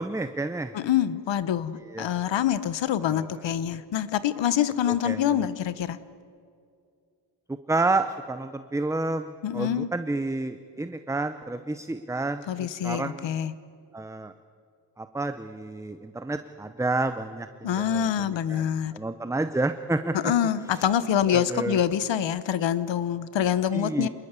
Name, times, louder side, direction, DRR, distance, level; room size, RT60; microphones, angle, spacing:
voice 1, 0.0-0.7 1.9-2.1 3.0-3.2 4.9-5.5 7.7-13.3 13.9-14.3 15.0-18.6 18.9-20.1 21.3-21.8 23.7-24.1, right 2 dB, 5° right, 9 dB, 0.6 m, -30 dB
voice 2, 0.7-6.0 9.4-9.9 12.5-13.5 17.6-19.0 20.1-24.1, left 9 dB, 80° left, 14 dB, 1.1 m, -26 dB
27.0 x 21.0 x 8.2 m, 2.3 s
wide cardioid pair, 145°, 43 cm